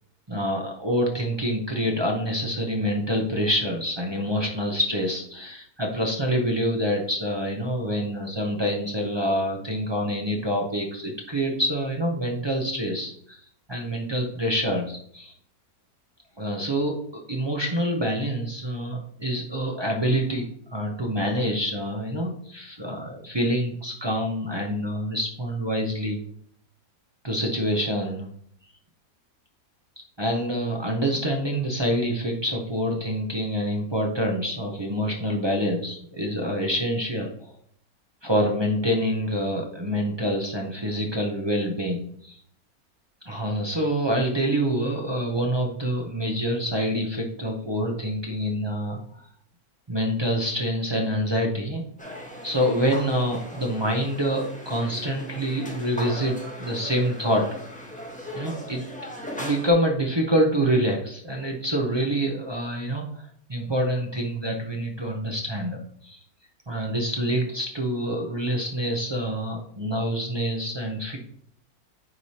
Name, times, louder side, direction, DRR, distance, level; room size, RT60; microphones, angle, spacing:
voice 1, 0.3-13.4 13.7-15.3 16.4-26.2 27.2-28.3 30.2-37.5 38.2-42.4 43.2-49.2 49.9-51.8 52.4-57.5 58.3-58.8 59.4-63.2 63.5-66.2 66.7-71.2, equal, 25° right, -1 dB, 0.5 m, -26 dB
sound 1, 52.0-59.7, equal, 5° left, 1.1 m, -38 dB
8.8 x 4.8 x 2.8 m, 0.64 s
omnidirectional pair, 1.6 m